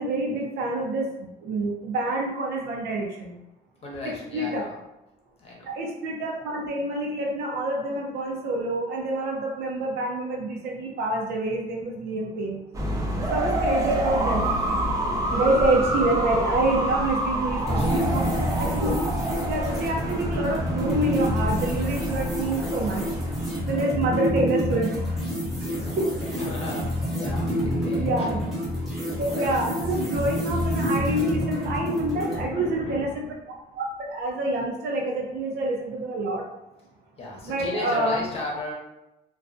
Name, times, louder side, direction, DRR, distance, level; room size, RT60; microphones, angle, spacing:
voice 1, 0.0-3.4 4.3-4.7 5.6-12.6 13.3-14.5 15.3-19.0 19.5-23.0 23.6-24.9 26.0-26.1 27.9-28.4 29.2-36.4 37.5-38.2, right 2 dB, 70° right, 1 dB, 0.6 m, -27 dB
voice 2, 3.8-4.8 5.4-5.8 17.7-18.5 25.7-28.5 28.8-29.0 29.3-29.5 31.1-31.5 32.3-33.3 37.2-38.7, left 2 dB, 35° left, -3 dB, 0.8 m, -36 dB
sound 1, 12.7-23.6, right 1 dB, 20° right, 0.5 m, -28 dB
sound 2, 17.7-32.5, equal, ahead, 0.9 m, -28 dB
2.4 x 2.2 x 2.5 m, 0.94 s
cardioid pair, 110°, 17 cm